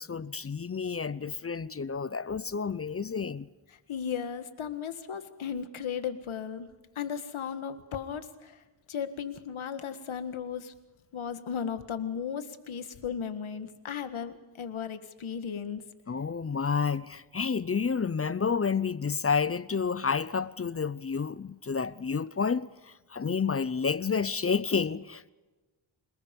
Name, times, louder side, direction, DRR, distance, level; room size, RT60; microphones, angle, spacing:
voice 1, 0.0-3.5 16.1-25.3, left 5 dB, 30° left, 0.6 m, -30 dB
voice 2, 3.9-6.7 7.0-8.6 8.9-10.7 11.1-15.8, left 7 dB, 80° left, 1.9 m, -35 dB
28.0 x 19.5 x 5.3 m
cardioid pair, 85°, 48 cm